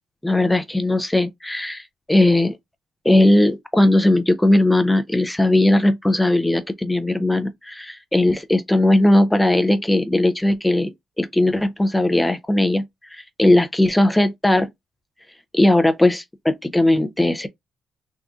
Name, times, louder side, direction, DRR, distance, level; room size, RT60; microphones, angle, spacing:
voice 1, 0.2-2.6 3.0-10.9 11.2-12.8 13.1-14.7 15.5-17.5, left 1 dB, 5° left, 0.4 m, -18 dB
3.5 x 2.6 x 2.4 m
cardioid pair, 90°, 0 cm